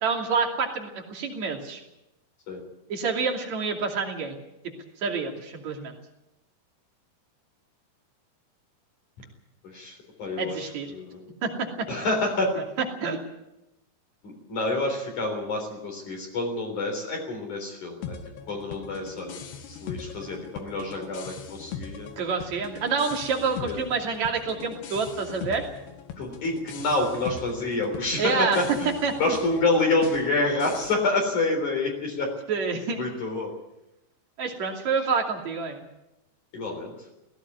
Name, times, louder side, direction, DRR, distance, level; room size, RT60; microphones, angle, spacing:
voice 1, 0.0-1.8 2.9-4.4 4.6-4.7 5.0-5.9 10.4-10.9 11.4-11.9 12.6-12.7 13.0-13.2 22.2-25.6 28.2-28.8 29.0-29.4 32.5-33.0 34.4-35.8, right 5 dB, 45° right, 1 dB, 3.7 m, -28 dB
voice 2, 9.7-11.2 11.9-12.5 14.2-18.1 18.5-19.4 19.7-22.1 23.6-23.8 26.2-28.9 29.2-32.3 33.0-33.5 36.5-36.9, left 2 dB, 50° left, 1 dB, 5.0 m, -27 dB
sound 1, 18.0-30.9, left 6 dB, 80° left, 3.8 m, -41 dB
17.5 x 16.0 x 9.6 m, 0.91 s
omnidirectional pair, 4.7 m